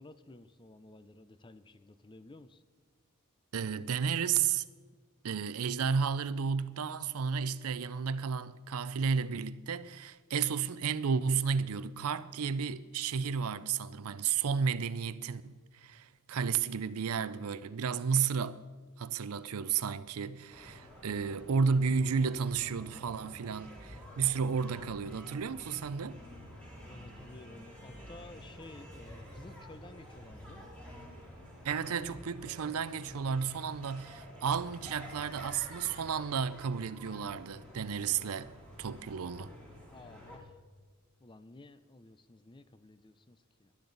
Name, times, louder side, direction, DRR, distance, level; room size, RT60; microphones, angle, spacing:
voice 1, 0.0-2.6 26.8-30.7 39.9-40.6 41.2-43.7, left 2 dB, 20° left, 0.5 m, -53 dB
voice 2, 3.5-4.6 5.2-18.7 19.0-26.1 31.6-38.5 38.8-39.5, right 6 dB, 70° right, 0.5 m, -32 dB
sound 1, 20.5-40.4, equal, 5° left, 3.2 m, -50 dB
19.5 x 11.5 x 4.0 m
head